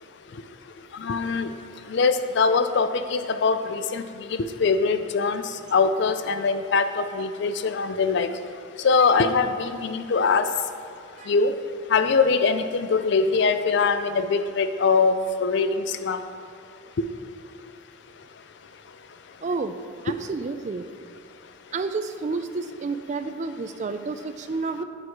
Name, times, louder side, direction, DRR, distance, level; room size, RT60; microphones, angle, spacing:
voice 1, 0.9-1.5 1.9-8.3 8.8-10.5 11.3-11.5 11.9-16.2 17.0-17.1, left 4 dB, 55° left, 10 dB, 0.4 m, -22 dB
voice 2, 19.4-19.7 20.0-20.9 21.7-24.8, right 4 dB, 35° right, 9 dB, 0.3 m, -30 dB
8.6 x 4.6 x 4.6 m, 2.3 s
head